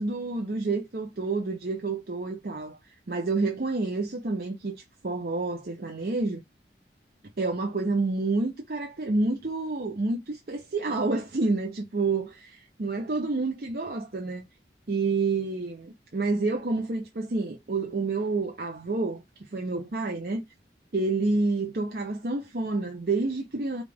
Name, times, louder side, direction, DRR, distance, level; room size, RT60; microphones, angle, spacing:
voice 1, 0.0-4.7 5.0-6.4 7.4-14.4 14.9-19.2 19.5-20.4 20.9-23.8, right 3 dB, 55° right, 0.6 m, -29 dB
5.0 x 2.4 x 3.5 m
head